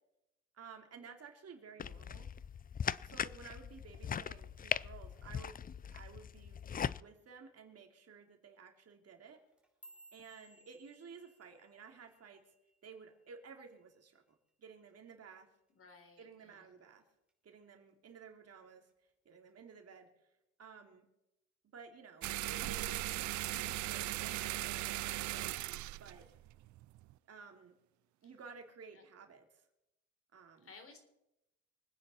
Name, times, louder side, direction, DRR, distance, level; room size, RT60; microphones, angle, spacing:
voice 1, 0.5-2.3 3.0-5.6 5.9-6.6 7.0-9.4 10.1-12.4 12.8-14.2 14.6-15.5 16.2-17.0 17.4-18.9 19.2-20.1 20.6-21.1 21.7-26.2 27.3-27.7 28.2-29.6 30.3-30.7, right 5 dB, 55° right, 3 dB, 3.0 m, -54 dB
sound 1, 1.8-7.0, left 7 dB, 30° left, 0.4 m, -40 dB
voice 2, 4.0-4.4 15.7-16.7 28.2-28.3 28.9-29.1 30.6-31.0, left 4 dB, 45° left, 5 dB, 3.9 m, -58 dB
sound 2, 9.4-13.8 14.1-14.5 14.9-15.3 15.7-15.9 16.5-16.9 17.3-18.1 18.5-18.9 19.7-19.8, right 1 dB, 5° right, 4.0 m, -63 dB
sound 3, 22.2-27.1, right 17 dB, 70° right, 0.5 m, -38 dB
25.5 x 9.8 x 4.4 m, 0.88 s
cardioid pair, 90°, 30 cm